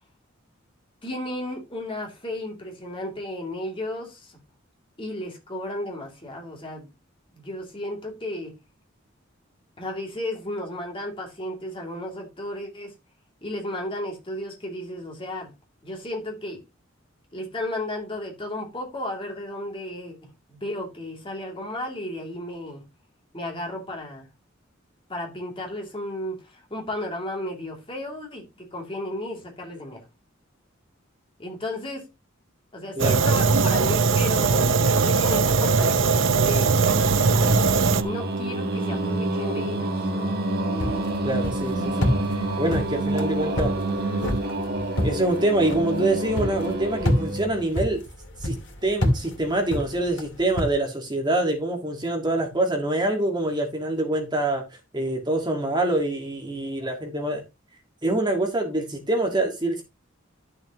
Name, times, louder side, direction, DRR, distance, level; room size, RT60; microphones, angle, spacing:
voice 1, 1.0-4.4 5.0-6.9 7.3-8.6 9.8-13.0 13.4-15.5 15.8-16.6 17.3-22.8 23.3-24.3 25.1-30.0 31.4-32.1 32.7-36.7 38.0-40.4, left 1 dB, 25° left, 2.7 m, -34 dB
Fire, 33.0-38.0, right 4 dB, 70° right, 0.7 m, -20 dB
Singing, 36.5-47.7, right 2 dB, 50° right, 1.5 m, -28 dB
sound 1, 40.8-50.7, left 1 dB, 65° left, 2.4 m, -29 dB
voice 2, 41.2-42.1 42.6-43.7 45.0-48.0 48.4-48.5 48.8-54.6 54.9-57.4 58.0-59.8, right 2 dB, 20° right, 1.8 m, -25 dB
12.0 x 6.6 x 2.9 m
head